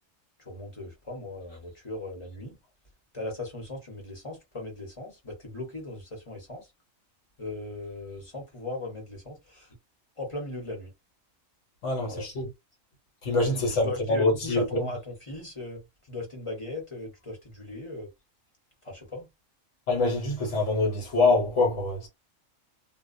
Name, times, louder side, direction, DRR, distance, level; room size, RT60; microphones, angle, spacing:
voice 1, 0.4-2.6 3.1-6.7 7.4-9.8 10.2-10.9 12.0-12.3 13.7-18.1 18.8-19.3, left 2 dB, 25° left, 0.9 m, -38 dB
voice 2, 11.8-12.5 13.2-14.9 19.9-22.1, left 2 dB, 65° left, 1.2 m, -25 dB
2.3 x 2.2 x 2.5 m
omnidirectional pair, 1.4 m